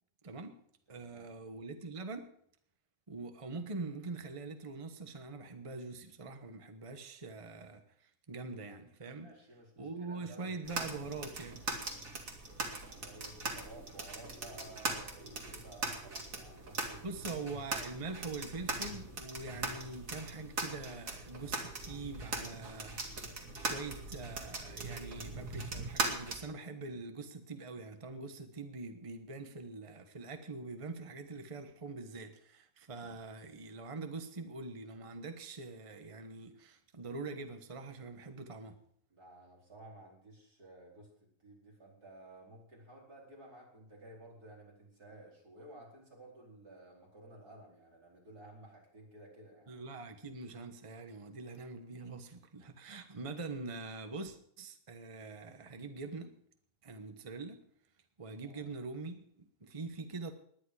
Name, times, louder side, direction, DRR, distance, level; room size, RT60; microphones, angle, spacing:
voice 1, 0.2-0.6 0.9-2.3 3.1-9.3 9.8-11.6 17.0-23.1 23.4-38.8 49.7-56.3 56.8-57.6 58.2-60.3, right 3 dB, 25° right, 1.2 m, -44 dB
voice 2, 0.9-1.3 9.1-10.9 12.9-17.4 39.1-49.7 58.4-58.7, right 1 dB, 80° right, 5.2 m, -54 dB
sound 1, 10.7-26.4, right 3 dB, 60° right, 2.8 m, -40 dB
19.5 x 11.0 x 4.9 m
omnidirectional pair, 1.6 m